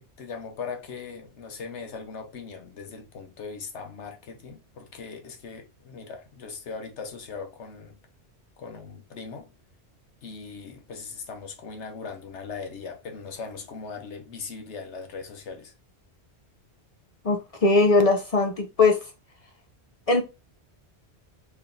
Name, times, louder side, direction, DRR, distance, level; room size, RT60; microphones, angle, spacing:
voice 1, 0.0-8.0 8.6-9.5 10.2-15.7, left 5 dB, 90° left, 1.2 m, -39 dB
voice 2, 17.2-19.0 20.1-20.2, left 3 dB, 45° left, 0.5 m, -20 dB
4.4 x 3.2 x 2.5 m
omnidirectional pair, 1.1 m